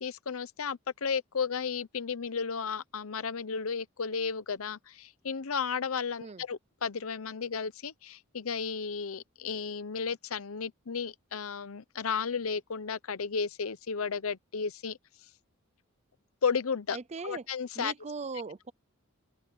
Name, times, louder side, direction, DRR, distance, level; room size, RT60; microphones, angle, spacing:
voice 1, 0.0-15.0 16.4-17.0 17.2-17.9, left 5 dB, 80° left, 0.8 m, -33 dB
voice 2, 16.9-17.4 17.8-18.7, right 4 dB, 30° right, 0.6 m, -39 dB
head